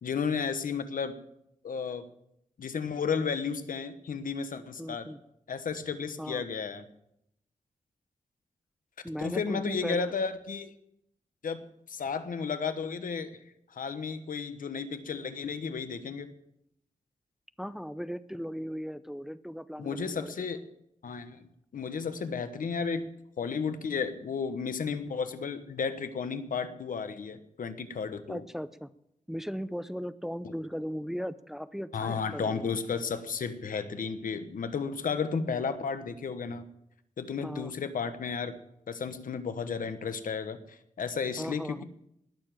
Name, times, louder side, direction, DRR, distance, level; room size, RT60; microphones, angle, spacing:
voice 1, 0.0-1.1 1.6-2.0 2.6-5.1 5.5-6.9 9.2-10.7 11.4-13.4 13.7-16.3 19.8-20.6 21.0-21.4 21.7-23.1 23.4-28.4 30.4-30.5 31.9-36.6 37.2-38.6 38.9-41.8, left 5 dB, 90° left, 10 dB, 1.2 m, -33 dB
voice 2, 4.8-5.2 6.2-6.4 9.0-10.1 17.6-20.5 28.3-28.9 29.3-32.8 35.5-35.6 37.4-37.7 41.4-41.8, equal, 5° right, 13 dB, 0.6 m, -37 dB
19.5 x 7.1 x 7.6 m, 0.79 s
wide cardioid pair, 110°, 14 cm